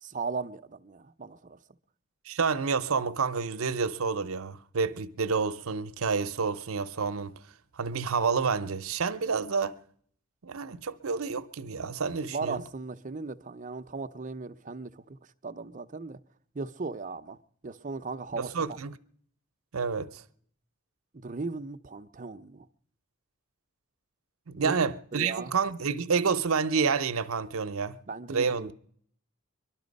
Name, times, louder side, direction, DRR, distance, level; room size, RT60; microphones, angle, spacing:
voice 1, 0.0-1.6 12.3-16.2 16.5-17.4 17.6-18.8 21.1-22.7 24.6-24.7 25.1-25.5 28.1-28.7, right 4 dB, 40° right, 0.6 m, -37 dB
voice 2, 2.3-7.4 7.8-9.8 10.4-12.6 18.4-18.9 19.7-20.2 24.5-28.0 28.3-28.7, right 5 dB, 80° right, 0.7 m, -29 dB
23.0 x 12.0 x 5.3 m
head